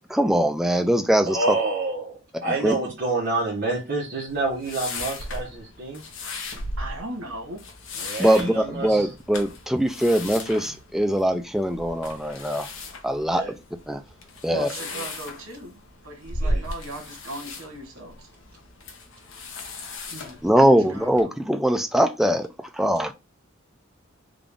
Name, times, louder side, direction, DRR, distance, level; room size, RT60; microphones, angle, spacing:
voice 1, 0.1-1.6 2.5-2.8 8.2-12.7 13.0-13.6 13.9-14.0 14.4-14.7 20.4-23.1, equal, ahead, 0.3 m, -22 dB
voice 2, 1.3-6.0 8.0-9.0 13.3-13.5 14.8-15.1 16.4-16.6, right 3 dB, 45° right, 1.1 m, -28 dB
sound 1, 4.3-21.2, left 1 dB, 65° left, 0.8 m, -36 dB
voice 3, 6.8-7.6 14.4-18.3 20.1-21.1, right 1 dB, 85° right, 1.3 m, -38 dB
3.8 x 2.4 x 3.4 m
head